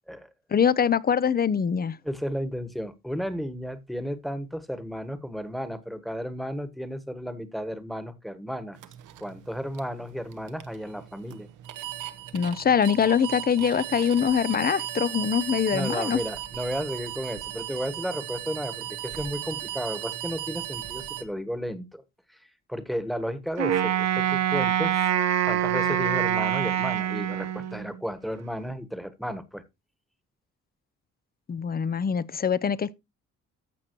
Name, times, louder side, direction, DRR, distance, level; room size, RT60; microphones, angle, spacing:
voice 1, 0.5-2.0 12.3-16.2 31.5-32.9, left 7 dB, 30° left, 0.6 m, -23 dB
voice 2, 2.0-8.8 9.2-11.5 15.7-22.0 22.3-22.4 22.7-25.0 25.4-29.6, equal, ahead, 1.3 m, -33 dB
sound 1, 8.8-21.2, right 12 dB, 90° right, 1.2 m, -36 dB
Wind instrument woodwind instrument, 23.6-28.0, right 10 dB, 60° right, 1.2 m, -25 dB
14.5 x 5.9 x 3.0 m
cardioid pair, 90°, 30 cm